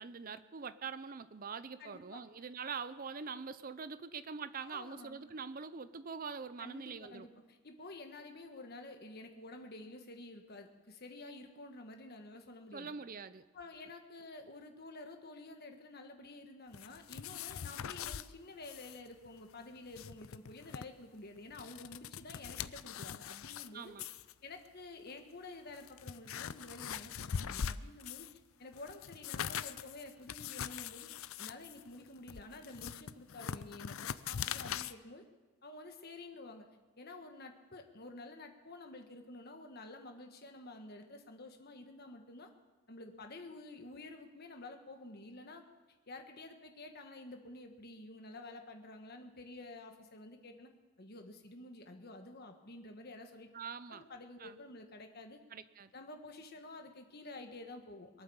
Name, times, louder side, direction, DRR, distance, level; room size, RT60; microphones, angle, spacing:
voice 1, 0.0-7.3 12.7-13.4 23.7-24.1 53.5-54.0 54.4-54.6 55.5-55.9, right 5 dB, 40° right, 13 dB, 0.6 m, -44 dB
voice 2, 1.8-2.2 4.6-5.2 6.6-12.9 13.5-23.9 24.4-28.3 28.6-31.1 31.4-35.2 35.6-36.7 37.0-42.5 42.9-45.6 46.1-50.7 51.0-53.5 53.9-55.4 55.9-58.2, left 2 dB, 45° left, 4 dB, 1.6 m, -50 dB
sound 1, 16.7-18.3 18.6-19.0 19.2-19.3 19.8-20.8 21.4-23.7 24.0-24.3 25.1-25.2 25.7-28.4 28.7-34.9, left 8 dB, 70° left, 0.5 m, -42 dB
22.5 x 8.9 x 7.1 m, 1.2 s
head